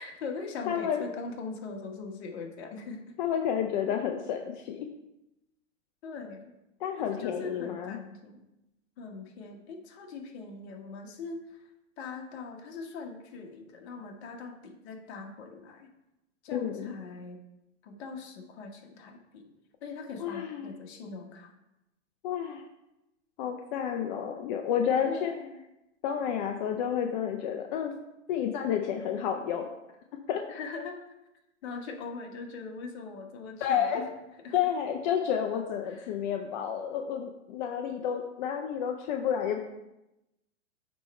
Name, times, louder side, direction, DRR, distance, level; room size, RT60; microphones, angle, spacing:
voice 1, 0.0-3.0 6.0-6.5 7.0-8.4 9.0-11.6 12.0-15.9 16.4-17.4 17.8-19.5 19.8-21.5 25.1-25.6 30.5-31.0 31.6-34.1 34.4-34.6 35.9-36.2, left 4 dB, 55° left, 3 dB, 1.3 m, -41 dB
voice 2, 0.7-1.0 3.2-4.9 6.8-8.0 16.5-16.9 20.2-20.8 22.2-22.6 23.4-25.3 26.0-27.9 28.3-29.7 30.3-30.4 33.6-34.0 34.5-39.6, left 8 dB, 40° left, 3 dB, 0.5 m, -30 dB
8.4 x 3.2 x 4.3 m, 0.93 s
hypercardioid pair, 125°, 39 cm